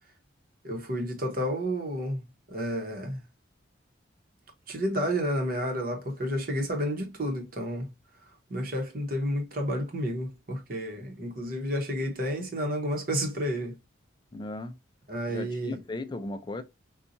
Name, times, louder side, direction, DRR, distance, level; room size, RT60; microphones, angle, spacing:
voice 1, 0.6-3.2 4.7-7.9 8.5-13.8 15.1-15.8, equal, 50° right, 0.9 m, -31 dB
voice 2, 14.3-14.8 15.3-16.6, left 2 dB, 25° left, 0.3 m, -36 dB
4.0 x 2.3 x 2.5 m
head